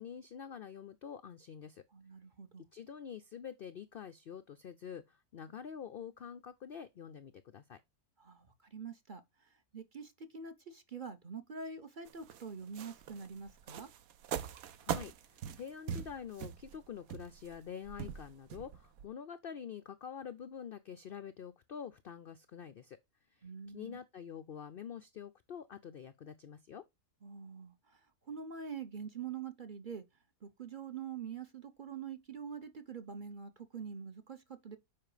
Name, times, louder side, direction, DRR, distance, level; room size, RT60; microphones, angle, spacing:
voice 1, 0.0-1.8 2.7-7.8 14.8-23.0 23.7-26.8, left 8 dB, 75° left, 0.5 m, -46 dB
voice 2, 1.9-2.7 8.2-13.9 23.4-24.0 27.2-28.0 28.3-30.0 30.4-34.8, right 6 dB, 40° right, 0.9 m, -45 dB
sound 1, 12.1-19.1, right 9 dB, 70° right, 1.1 m, -42 dB
7.6 x 5.1 x 4.9 m
omnidirectional pair, 1.7 m